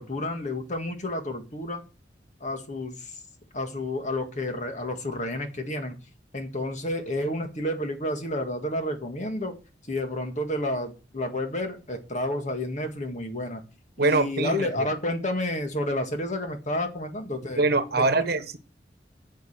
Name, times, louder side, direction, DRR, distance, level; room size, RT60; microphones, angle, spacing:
voice 1, 0.0-1.8 2.4-3.2 3.5-6.0 6.3-9.5 9.9-13.6 14.0-17.6 18.0-18.3, left 1 dB, 45° left, 1.8 m, -30 dB
voice 2, 14.0-14.9 17.6-18.6, right 3 dB, 60° right, 1.2 m, -24 dB
9.5 x 6.6 x 6.6 m
head